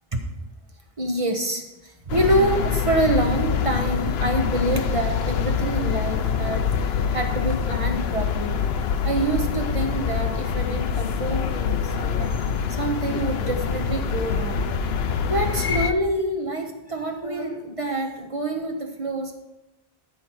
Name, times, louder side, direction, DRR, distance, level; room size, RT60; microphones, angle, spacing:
voice 1, 1.0-8.6 9.0-12.3 12.7-14.7 15.3-19.3, right 2 dB, 35° right, 3 dB, 1.3 m, -26 dB
sound 1, 2.1-15.9, left 7 dB, 80° left, 0.9 m, -25 dB
13.5 x 5.8 x 4.6 m, 0.96 s
omnidirectional pair, 1.0 m